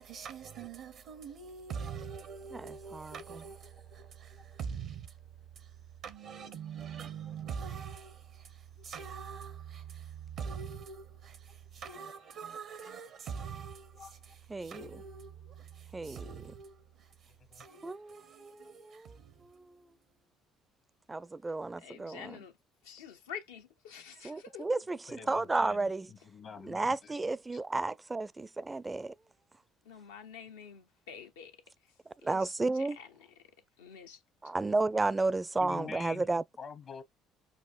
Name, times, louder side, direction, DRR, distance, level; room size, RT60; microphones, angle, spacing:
voice 1, 0.0-20.2, right 6 dB, 65° right, 0.7 m, -44 dB
voice 2, 4.0-4.5 8.8-8.9 13.9-14.4 17.3-17.6 25.1-27.2 27.5-27.6 35.6-36.3 36.6-37.0, left 6 dB, 55° left, 0.9 m, -47 dB
voice 3, 14.5-14.9 15.9-16.2 17.8-19.1 19.5-19.7 21.1-22.4 24.2-26.1 26.6-29.1 32.2-33.0 34.4-36.4, right 3 dB, 20° right, 0.4 m, -32 dB
voice 4, 21.8-22.5 22.8-24.7 29.9-31.5 32.2-33.1 33.8-34.2, left 7 dB, 85° left, 0.7 m, -47 dB
6.4 x 2.4 x 2.4 m
hypercardioid pair, 55°, 0 cm